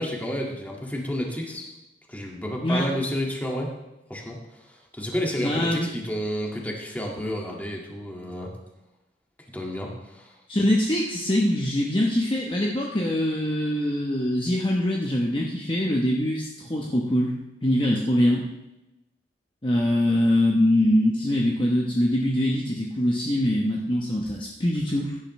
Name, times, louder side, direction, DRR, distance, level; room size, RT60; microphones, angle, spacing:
voice 1, 0.0-1.7 2.1-3.7 4.1-8.5 9.5-10.4, equal, 10° left, -1 dB, 1.9 m, -31 dB
voice 2, 5.4-5.9 10.5-17.3 17.6-18.4 19.6-25.1, left 1 dB, 30° left, -2 dB, 1.0 m, -23 dB
16.5 x 10.5 x 3.2 m, 0.98 s
head